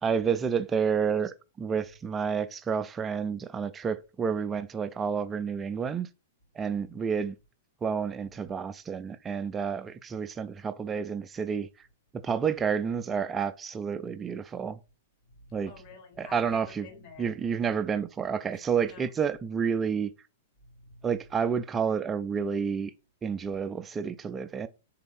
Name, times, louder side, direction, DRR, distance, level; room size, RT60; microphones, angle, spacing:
voice 1, 0.0-6.1 6.5-7.4 7.8-11.7 12.2-14.8 15.5-15.7 16.2-16.9 17.2-20.1 21.0-22.9 23.2-24.7, right 6 dB, 20° right, 0.3 m, -30 dB
voice 2, 15.4-17.4 18.5-19.1 20.6-21.1 23.5-23.6, left 3 dB, 40° left, 1.3 m, -50 dB
3.6 x 2.5 x 3.4 m
figure-of-eight pair, 105°, 0 cm